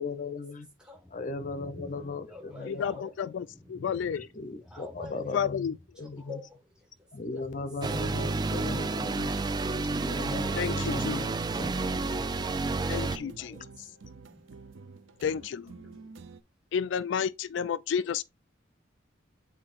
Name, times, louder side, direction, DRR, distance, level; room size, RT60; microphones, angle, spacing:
voice 1, 0.0-0.7 1.1-3.0 4.2-6.4 7.1-9.3 9.9-12.1 13.0-13.3, left 3 dB, 40° left, 0.7 m, -38 dB
voice 2, 0.8-1.2 1.4-1.5 2.3-3.4 4.6-5.4 6.0-6.9 7.3-7.4 10.1-10.7 13.1-13.9 15.8-16.1, left 4 dB, 5° right, 1.5 m, -47 dB
sound 1, 0.9-6.2 6.5-15.1 15.4-16.1, left 1 dB, 10° left, 1.2 m, -52 dB
voice 3, 2.7-4.3 5.3-5.8 10.6-11.2 12.9-13.6 15.2-15.8 16.7-18.2, left 7 dB, 65° left, 0.3 m, -31 dB
sound 2, 7.8-13.2, right 3 dB, 20° right, 0.3 m, -30 dB
sound 3, 11.0-16.4, right 4 dB, 80° right, 0.6 m, -49 dB
8.6 x 4.4 x 2.5 m
head